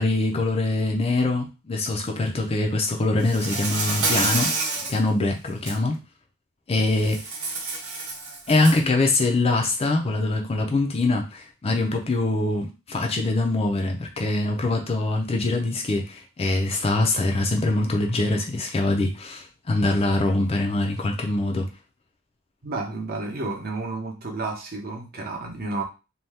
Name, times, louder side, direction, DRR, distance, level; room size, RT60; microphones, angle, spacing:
voice 1, 0.0-4.5 4.8-6.0 6.7-7.3 8.5-21.7, left 2 dB, 25° left, 3 dB, 0.4 m, -23 dB
Insect, 3.2-5.0 5.5-5.8 7.0-8.9, right 3 dB, 85° right, 0.9 m, -28 dB
voice 2, 22.6-25.8, right 3 dB, 45° right, 0 dB, 0.8 m, -31 dB
2.7 x 2.2 x 3.3 m, 0.29 s
head